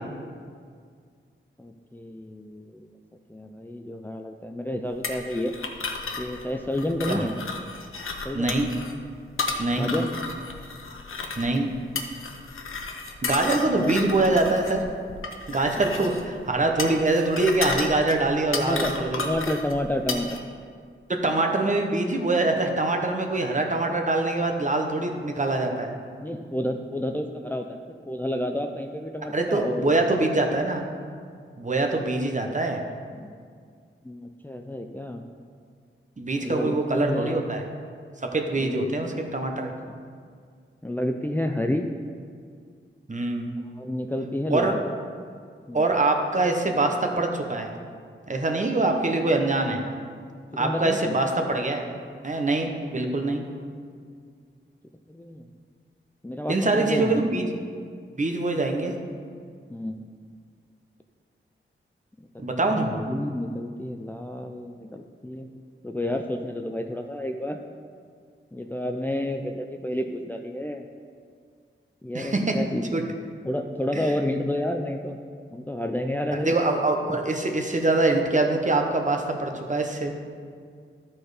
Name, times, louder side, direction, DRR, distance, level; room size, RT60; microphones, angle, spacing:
voice 1, 1.6-2.9 3.3-5.5 6.2-7.3 8.2-8.6 9.7-10.2 13.7-13.9 18.6-20.4 26.2-29.9 33.1-33.3 34.0-35.2 36.4-37.4 38.6-38.9 39.8-40.0 40.8-41.9 43.8-44.8 45.7-45.8 50.6-51.1 55.1-55.5 56.2-57.2 59.7-60.0 62.3-65.5 65.8-67.6 68.5-70.8 72.0-73.1 73.4-75.2 75.5-76.6, left 1 dB, 10° left, 4 dB, 0.4 m, -30 dB
sound 1, 5.0-20.4, left 3 dB, 75° left, 0.9 m, -33 dB
voice 2, 8.3-8.7 9.6-9.9 11.4-11.7 13.2-14.8 15.5-19.3 21.1-26.0 29.3-30.8 31.6-32.8 36.2-37.6 38.3-39.7 43.1-43.5 44.5-44.8 45.7-47.7 48.3-49.8 50.6-51.9 52.2-53.5 56.5-57.5 58.1-58.9 62.4-62.9 72.1-72.5 72.9-73.0 73.9-74.1 76.3-80.1, right 2 dB, 35° right, 3 dB, 1.0 m, -24 dB
12.5 x 4.4 x 4.9 m, 2.1 s
wide cardioid pair, 90°, 21 cm